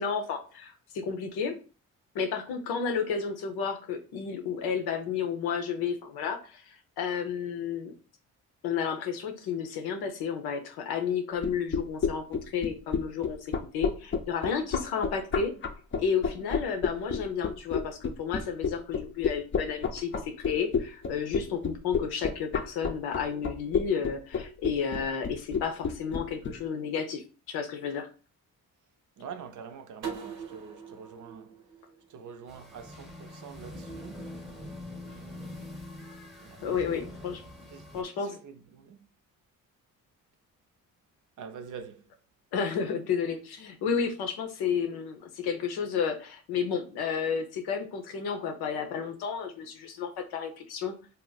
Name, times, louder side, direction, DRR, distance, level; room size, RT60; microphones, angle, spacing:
voice 1, 0.0-1.5 2.1-7.9 8.6-15.5 16.0-28.1 36.6-37.4 37.9-38.3 42.5-50.9, left 6 dB, 85° left, 0.7 m, -32 dB
sound 1, 11.4-26.5, left 6 dB, 35° left, 0.5 m, -29 dB
voice 2, 29.2-31.5 32.1-34.4 35.0-35.9 36.4-36.7 37.0-37.2 37.7-37.9 38.1-39.1 41.4-42.0, right 6 dB, 55° right, 0.6 m, -46 dB
sound 2, 30.0-32.8, right 6 dB, 85° right, 0.8 m, -42 dB
sound 3, 32.5-38.0, left 1 dB, ahead, 0.8 m, -44 dB
2.7 x 2.1 x 3.9 m
supercardioid pair, 60°, 37 cm